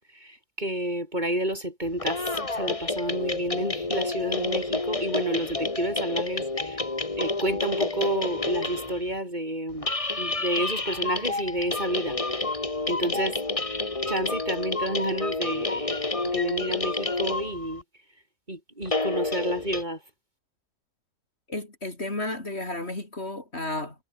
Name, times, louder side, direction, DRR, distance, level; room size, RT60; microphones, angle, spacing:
voice 1, 0.6-2.2 2.5-6.8 7.2-9.9 10.2-12.2 12.9-13.4 14.1-17.8 18.5-20.0, right 1 dB, 30° right, 6.5 m, -30 dB
sound 1, 1.9-9.1 9.7-17.8 18.9-19.8, left 3 dB, 25° left, 1.8 m, -29 dB
voice 2, 21.5-23.9, left 2 dB, 45° left, 4.5 m, -32 dB
omnidirectional pair, 1.5 m